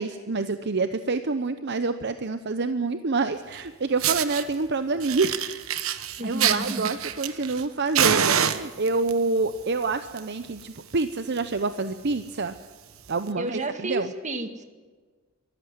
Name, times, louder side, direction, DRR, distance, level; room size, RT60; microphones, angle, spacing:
voice 1, 0.0-5.4 6.2-12.5 13.1-14.1, right 3 dB, 55° right, 10 dB, 0.8 m, -27 dB
Fire, 3.5-3.6 4.0-4.4 5.0-7.6 7.9-9.1 9.9-10.2 10.5-10.6 11.0-11.1 11.3-11.6 12.1-12.2 13.1-13.2, right 8 dB, 80° right, 1.2 m, -25 dB
voice 2, 6.2-6.9 7.2-7.4 13.4-14.6, right 1 dB, 35° right, 8 dB, 1.8 m, -31 dB
24.0 x 14.0 x 9.6 m, 1.4 s
head